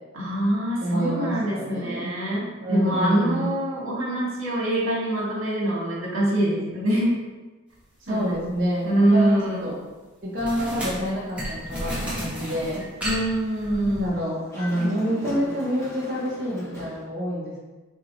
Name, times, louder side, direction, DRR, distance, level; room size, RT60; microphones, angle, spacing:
voice 1, 0.1-7.1 8.1-8.5 8.8-9.7 13.0-14.1, right 1 dB, 75° right, -4 dB, 1.4 m, -24 dB
voice 2, 0.8-2.2 2.6-3.5 8.1-9.7 10.2-12.8 13.7-17.6, equal, 45° right, -7 dB, 0.8 m, -27 dB
sound 1, 8.3-8.5 10.4-14.1, equal, 5° right, 1.1 m, -33 dB
Dog, 11.5-12.6 13.0-13.1 14.4-17.0, left 1 dB, 15° left, 0.8 m, -39 dB
4.6 x 2.9 x 3.8 m, 1.2 s
head